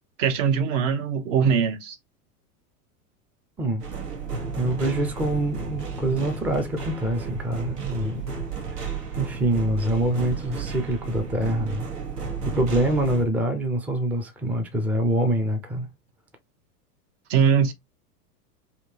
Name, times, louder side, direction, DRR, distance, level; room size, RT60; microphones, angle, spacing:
voice 1, 0.2-2.0 17.3-17.7, right 7 dB, 50° right, 0.9 m, -21 dB
sound 1, 3.8-13.2, right 5 dB, 80° right, 1.2 m, -33 dB
voice 2, 4.6-8.2 8.7-8.8 9.2-11.9 12.4-15.9, right 1 dB, 5° right, 0.4 m, -25 dB
3.5 x 2.8 x 2.8 m
figure-of-eight pair, 90°, 47 cm